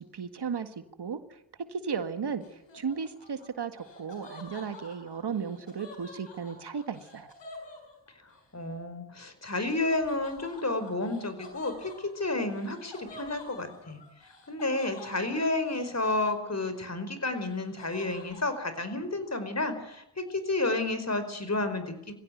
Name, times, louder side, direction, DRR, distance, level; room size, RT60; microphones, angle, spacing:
voice 1, 0.1-1.2 1.7-2.4 2.7-7.3, right 6 dB, 65° right, 9 dB, 1.9 m, -35 dB
Laughter, 2.4-8.4 9.9-16.8 17.2-18.6, left 2 dB, 90° left, 5.8 m, -49 dB
voice 2, 8.5-14.0 14.5-22.1, left 2 dB, 40° left, 10 dB, 4.9 m, -31 dB
20.5 x 16.0 x 9.3 m, 0.80 s
cardioid pair, 45°, 42 cm